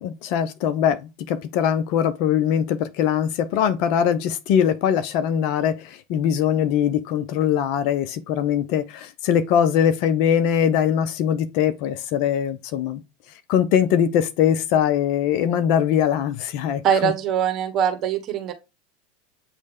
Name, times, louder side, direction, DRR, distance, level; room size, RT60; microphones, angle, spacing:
voice 1, 0.0-13.0 13.5-17.1, left 9 dB, 60° left, 0.7 m, -22 dB
voice 2, 16.8-18.5, right 8 dB, 45° right, 1.2 m, -22 dB
8.0 x 3.2 x 3.6 m
hypercardioid pair, 110°, 0 cm